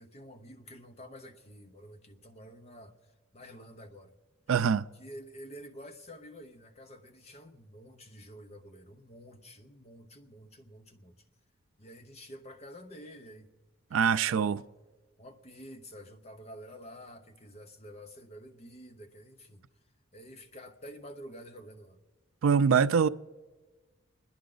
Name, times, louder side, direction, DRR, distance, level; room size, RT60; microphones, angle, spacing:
voice 1, 0.0-4.1 4.9-11.1 11.8-13.5 13.9-14.7 15.2-19.6 20.1-22.0, equal, 35° left, 1.0 m, -49 dB
voice 2, 4.5-4.9 13.9-14.6 22.4-23.1, right 6 dB, 85° right, 0.4 m, -24 dB
30.0 x 10.5 x 3.9 m
head